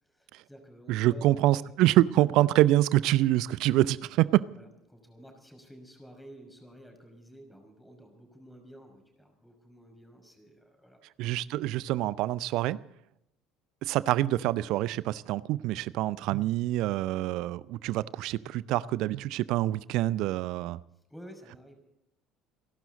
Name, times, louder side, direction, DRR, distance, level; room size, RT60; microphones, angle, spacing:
voice 1, 0.0-1.9 2.2-2.7 3.0-3.1 4.6-11.6 20.9-21.8, equal, 5° left, 4 dB, 5.8 m, -51 dB
voice 2, 0.9-4.4 11.2-12.8 13.8-20.8, right 15 dB, 55° right, 20 dB, 0.5 m, -26 dB
29.5 x 12.0 x 4.0 m, 0.82 s
figure-of-eight pair, 60°, 0 cm